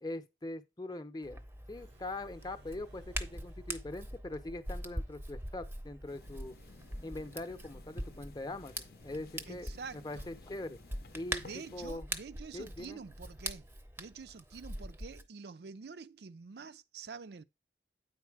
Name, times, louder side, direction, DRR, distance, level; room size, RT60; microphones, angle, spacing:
voice 1, 0.0-1.4 1.7-6.6 7.0-9.7 10.0-10.8 11.1-11.4 11.7-12.1 12.5-13.0, left 2 dB, 20° left, 0.7 m, -42 dB
Hands, 1.2-15.2, right 1 dB, 10° right, 0.6 m, -43 dB
sound 1, 1.6-4.0, equal, 85° right, 1.0 m, -60 dB
sound 2, 6.1-11.9, left 3 dB, 60° left, 0.7 m, -56 dB
voice 2, 9.5-10.3 11.4-13.7 14.0-17.4, right 5 dB, 65° right, 0.5 m, -47 dB
9.3 x 4.3 x 4.8 m
head